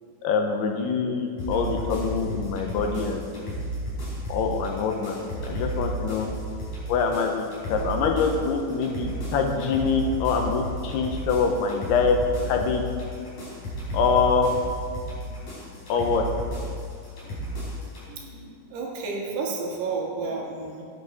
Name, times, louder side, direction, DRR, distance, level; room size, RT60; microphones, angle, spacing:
voice 1, 0.2-3.2 4.3-5.2 5.4-6.3 6.9-12.2 12.5-12.8 13.9-14.5 15.9-16.2, left 5 dB, 85° left, 3 dB, 2.9 m, -24 dB
sound 1, 1.4-18.0, right 1 dB, 50° left, 4.7 m, -33 dB
voice 2, 17.5-20.8, right 4 dB, 85° right, -2 dB, 3.7 m, -33 dB
12.5 x 9.9 x 4.2 m, 2.2 s
omnidirectional pair, 4.6 m